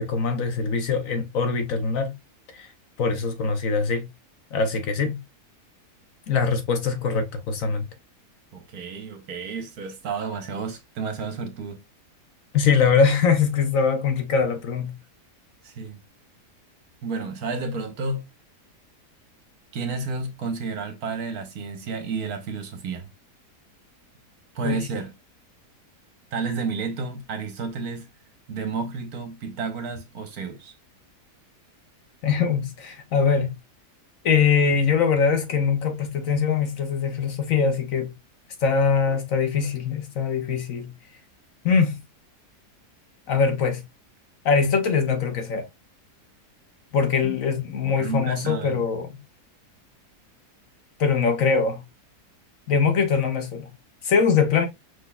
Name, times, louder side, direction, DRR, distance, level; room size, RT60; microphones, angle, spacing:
voice 1, 0.0-2.1 2.5-2.7 3.0-4.1 4.5-5.2 6.3-7.8 12.5-14.9 24.6-24.8 32.2-33.5 34.2-38.1 38.6-40.9 41.6-42.0 43.3-43.8 44.4-45.7 46.9-49.2 51.0-51.8 52.7-53.7 54.0-54.7, left 5 dB, 60° left, 1.0 m, -22 dB
voice 2, 8.5-11.8 15.6-16.0 17.0-18.2 19.7-23.1 24.5-25.1 26.3-28.1 28.5-30.7 47.2-47.3 47.8-48.8, right 4 dB, 65° right, 1.4 m, -31 dB
5.2 x 3.8 x 2.3 m
omnidirectional pair, 1.7 m